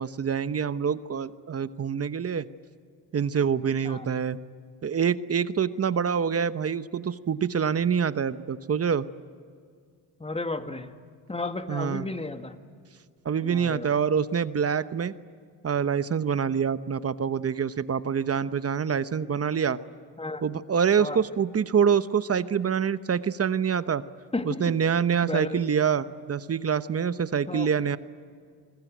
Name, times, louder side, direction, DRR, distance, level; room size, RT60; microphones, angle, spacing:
voice 1, 0.0-2.5 3.1-4.4 4.8-9.1 11.7-12.1 13.2-15.1 15.6-19.8 20.4-24.0 24.4-28.0, right 7 dB, 35° right, 14 dB, 1.0 m, -26 dB
voice 2, 3.8-4.2 10.2-11.0 11.3-12.6 13.4-13.9 20.2-20.4 21.0-21.2 24.3-24.7 25.2-25.6 27.5-27.7, left 2 dB, 15° left, 8 dB, 1.9 m, -33 dB
28.0 x 21.0 x 9.3 m, 2.1 s
cardioid pair, 85°, 40 cm